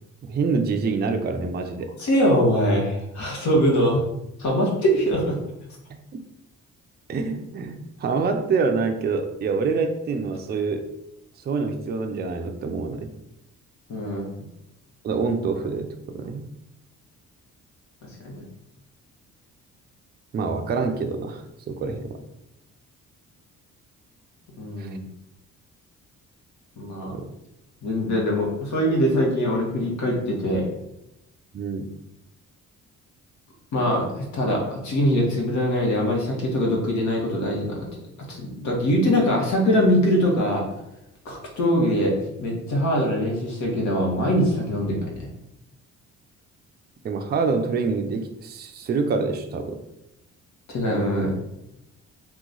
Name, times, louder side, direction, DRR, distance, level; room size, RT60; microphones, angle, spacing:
voice 1, 0.2-1.9 5.9-6.0 7.1-10.9 11.4-13.1 15.0-16.5 20.3-22.2 24.8-24.9 27.1-27.3 31.5-31.9 47.0-49.8, right 4 dB, 35° right, 6 dB, 0.4 m, -26 dB
voice 2, 2.0-4.0 4.4-5.4 13.9-14.3 18.2-18.4 24.6-25.1 26.8-27.1 27.8-30.7 33.7-37.9 38.3-40.6 41.2-42.1 42.4-45.3 50.7-51.3, equal, 70° left, -1 dB, 1.1 m, -22 dB
2.9 x 2.2 x 3.8 m, 0.86 s
cardioid pair, 90°, 30 cm